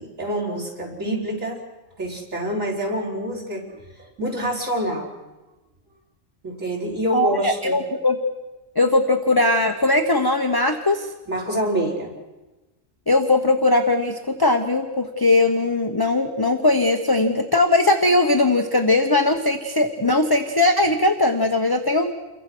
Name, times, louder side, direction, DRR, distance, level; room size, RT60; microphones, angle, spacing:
voice 1, 0.0-1.6 2.0-5.1 6.4-7.8 11.3-12.1, equal, 80° right, 0 dB, 5.4 m, -26 dB
voice 2, 7.1-8.2 8.7-11.1 13.1-22.1, left 2 dB, 20° left, 5 dB, 1.1 m, -19 dB
29.0 x 23.0 x 6.2 m, 1.1 s
omnidirectional pair, 1.3 m